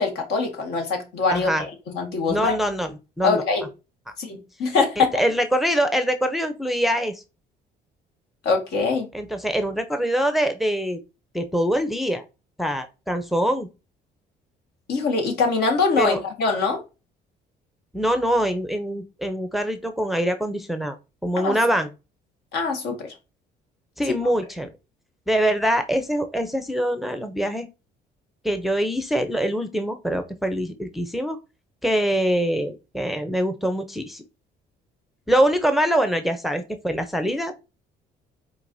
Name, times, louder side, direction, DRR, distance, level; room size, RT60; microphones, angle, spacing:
voice 1, 0.0-1.5 1.9-2.6 3.2-3.7 4.2-5.1 8.4-9.1 14.9-16.8 21.4-21.5 22.5-23.1 24.1-24.3, left 4 dB, 75° left, 1.6 m, -23 dB
voice 2, 1.3-1.6 2.3-3.4 5.0-7.2 9.1-11.0 11.3-12.2 12.6-13.7 16.0-16.2 17.9-21.0 21.2-21.9 24.0-24.7 25.3-27.7 28.4-31.4 31.8-34.2 35.3-37.5, equal, ahead, 0.5 m, -24 dB
4.5 x 4.2 x 2.6 m
cardioid pair, 110°, 17 cm